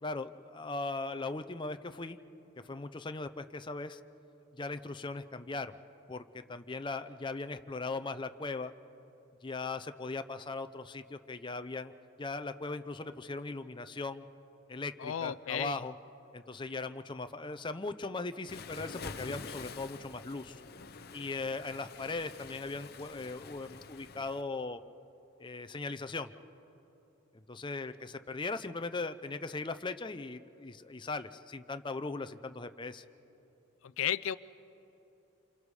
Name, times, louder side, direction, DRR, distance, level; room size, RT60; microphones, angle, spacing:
voice 1, 0.0-2.2 2.7-4.0 4.5-5.8 6.1-8.7 9.4-11.9 12.2-14.3 14.7-15.9 16.3-20.6 21.1-24.8 25.4-26.3 27.3-33.0, left 3 dB, 25° left, 9 dB, 0.6 m, -39 dB
voice 2, 15.0-15.8 34.0-34.4, left 9 dB, 75° left, 17 dB, 0.4 m, -33 dB
Waves surf, 18.5-24.4, left 4 dB, 50° left, 0.8 m, -47 dB
28.5 x 27.5 x 4.9 m, 3.0 s
head